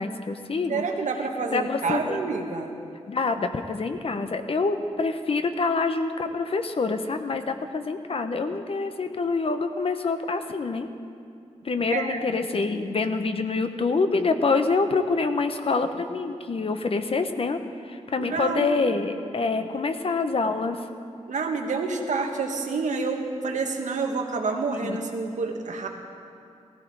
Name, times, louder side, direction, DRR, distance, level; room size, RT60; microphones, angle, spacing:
voice 1, 0.0-0.8 1.5-2.2 3.1-10.9 11.6-20.8 24.7-25.0, left 4 dB, 50° left, 8 dB, 0.9 m, -26 dB
voice 2, 0.7-2.7 11.9-12.2 18.2-18.7 21.3-25.9, right 4 dB, 90° right, 3 dB, 1.5 m, -28 dB
17.0 x 15.5 x 4.7 m, 2.5 s
wide cardioid pair, 140°, 12 cm